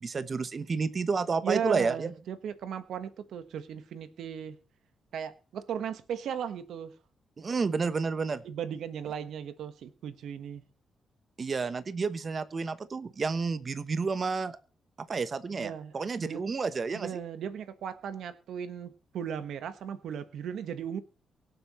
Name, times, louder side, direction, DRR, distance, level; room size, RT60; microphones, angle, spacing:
voice 1, 0.0-2.1 7.4-8.4 11.4-14.6 15.1-17.1, right 4 dB, 35° right, 0.9 m, -30 dB
voice 2, 1.4-4.6 5.1-6.9 8.4-10.6 15.5-16.4 16.9-21.0, right 8 dB, 80° right, 1.3 m, -36 dB
23.5 x 7.9 x 3.1 m
cardioid pair, 115°, 0 cm